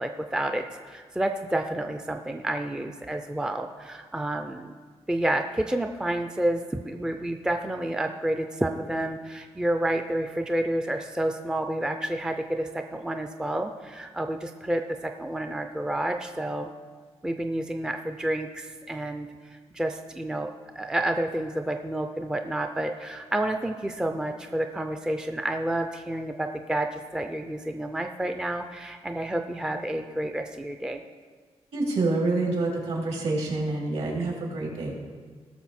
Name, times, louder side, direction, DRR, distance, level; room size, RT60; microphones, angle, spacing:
voice 1, 0.0-4.7 5.1-16.7 17.2-19.3 19.7-31.0, right 1 dB, 5° right, 5 dB, 0.4 m, -29 dB
voice 2, 31.7-34.9, right 2 dB, 65° right, -2 dB, 3.1 m, -27 dB
18.0 x 6.5 x 4.2 m, 1.5 s
wide cardioid pair, 165°, 11 cm